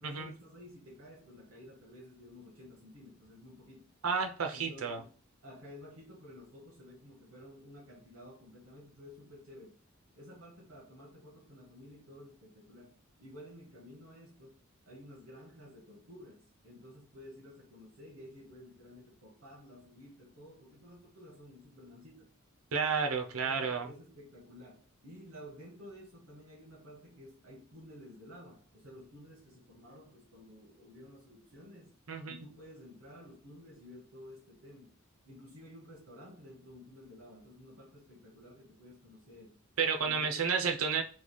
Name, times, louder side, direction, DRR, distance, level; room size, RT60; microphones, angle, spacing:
voice 1, 0.0-3.9 4.5-5.1 5.4-9.7 10.1-14.6 14.9-22.3 23.2-31.9 32.2-35.0 35.2-39.6 40.0-40.7, left 1 dB, 70° right, 1.1 m, -53 dB
voice 2, 4.0-5.0 22.7-23.9 32.1-32.4 39.8-41.0, right 5 dB, 90° right, 0.7 m, -31 dB
3.2 x 2.4 x 3.9 m
head